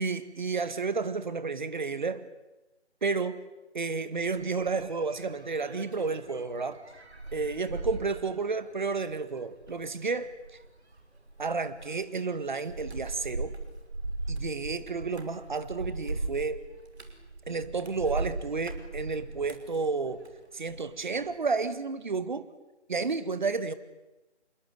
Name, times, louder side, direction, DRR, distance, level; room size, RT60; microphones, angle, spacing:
voice 1, 0.0-2.2 3.0-3.4 3.7-6.8 7.3-10.3 11.4-13.6 14.3-16.6 17.5-20.2 20.5-22.5 22.9-23.7, right 4 dB, 40° right, 13 dB, 2.0 m, -31 dB
sound 1, 4.2-20.9 21.2-21.7, right 2 dB, 65° right, 5.6 m, -39 dB
27.5 x 22.5 x 9.5 m, 1.0 s
figure-of-eight pair, 160°, 35 cm